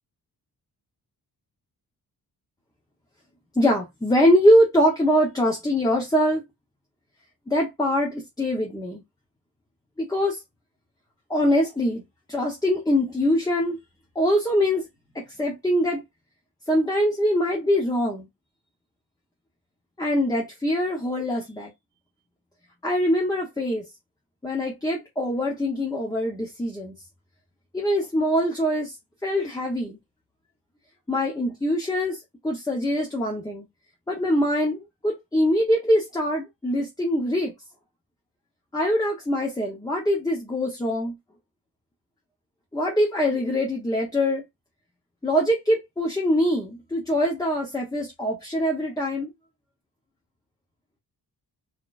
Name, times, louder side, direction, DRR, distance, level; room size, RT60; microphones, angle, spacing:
voice 1, 3.6-6.4 7.5-9.0 10.0-10.4 11.3-12.0 12.3-13.8 14.1-14.9 15.1-16.0 16.7-18.3 20.0-21.7 22.8-23.8 24.4-26.9 27.7-28.9 29.2-30.0 31.1-32.2 32.4-33.7 34.1-37.5 38.7-41.2 42.7-44.4 45.2-49.3, equal, 10° left, 0.9 m, -23 dB
4.1 x 3.0 x 2.4 m
wide cardioid pair, 145°, 39 cm